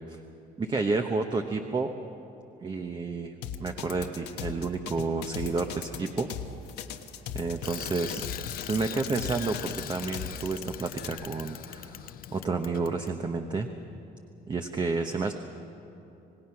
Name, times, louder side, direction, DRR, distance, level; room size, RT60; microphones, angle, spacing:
voice 1, 0.6-1.9 2.6-3.3 3.6-6.3 7.3-8.2 8.7-13.7 14.5-15.3, right 3 dB, 25° right, 5 dB, 1.0 m, -30 dB
sound 1, 3.4-11.1, left 9 dB, 80° left, 1.3 m, -38 dB
Bicycle, 7.6-13.1, left 11 dB, 60° left, 0.6 m, -41 dB
27.0 x 18.5 x 5.9 m, 2.9 s
cardioid pair, 110°, 17 cm